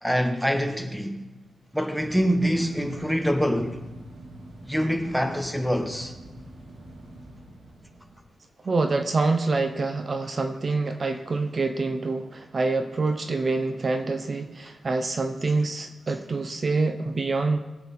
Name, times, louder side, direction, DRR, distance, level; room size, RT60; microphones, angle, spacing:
voice 1, 0.0-1.2 1.7-3.8 4.7-6.1, equal, ahead, 1.0 m, -25 dB
sound 1, 1.9-8.2, right 1 dB, 75° right, 2.9 m, -45 dB
voice 2, 8.6-17.6, right 3 dB, 35° right, 0.7 m, -26 dB
21.0 x 7.9 x 4.1 m
wide cardioid pair, 130°, 0 cm